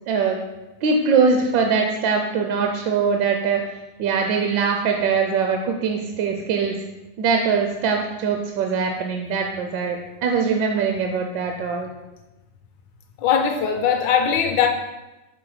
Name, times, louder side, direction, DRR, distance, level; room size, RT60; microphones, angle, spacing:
voice 1, 0.1-0.4 0.8-3.6 4.0-6.8 7.2-11.9, right 5 dB, 70° right, 3 dB, 1.1 m, -22 dB
voice 2, 13.2-14.7, left 7 dB, 75° left, 4 dB, 1.2 m, -20 dB
6.0 x 3.9 x 4.8 m, 1.0 s
omnidirectional pair, 2.3 m